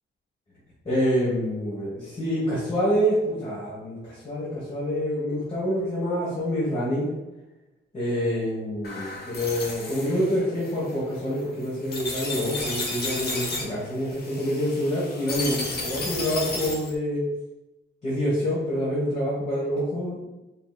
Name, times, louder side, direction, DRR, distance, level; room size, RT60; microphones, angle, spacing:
voice 1, 0.8-7.1 7.9-17.2 18.0-20.2, equal, 30° left, -8 dB, 1.4 m, -27 dB
sound 1, 8.8-16.9, left 2 dB, 50° left, 0.9 m, -33 dB
5.5 x 3.1 x 2.4 m, 1.0 s
wide cardioid pair, 140°, 21 cm